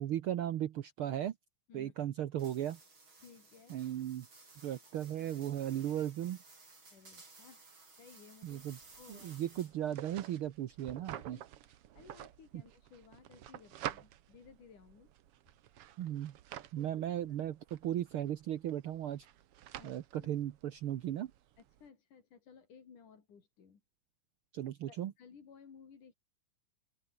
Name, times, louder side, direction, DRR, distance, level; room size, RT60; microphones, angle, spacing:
voice 1, 0.0-1.3 1.7-2.8 3.7-4.3 4.6-6.4 8.4-8.8 9.1-11.4 12.5-12.6 16.0-16.4 16.7-19.3 19.8-21.3 24.5-25.1, right 11 dB, 85° right, 1.2 m, -36 dB
sound 1, 2.4-9.9, right 3 dB, 35° right, 6.3 m, -58 dB
voice 2, 3.2-3.9 5.2-5.6 6.9-7.7 8.0-8.6 9.0-9.4 11.1-15.1 16.8-17.2 19.7-20.3 21.6-23.8 24.9-26.1, left 6 dB, 70° left, 5.1 m, -58 dB
sound 2, 8.5-21.9, right 12 dB, 65° right, 1.5 m, -50 dB
omnidirectional pair, 3.7 m